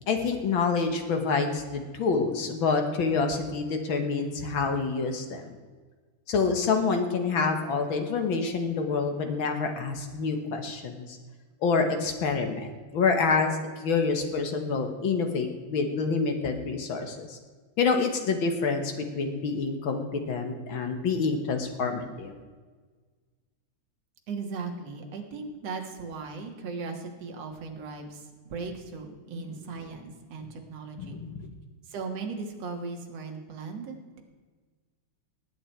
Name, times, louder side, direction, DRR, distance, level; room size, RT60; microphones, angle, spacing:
voice 1, 0.1-5.6 6.3-11.2 11.6-17.4 17.8-22.3 29.3-29.6 31.0-31.5, left 4 dB, 55° left, 5 dB, 1.7 m, -27 dB
voice 2, 24.3-31.2 31.9-34.2, right 4 dB, 60° right, 3 dB, 2.6 m, -37 dB
19.0 x 8.9 x 4.5 m, 1.4 s
omnidirectional pair, 3.3 m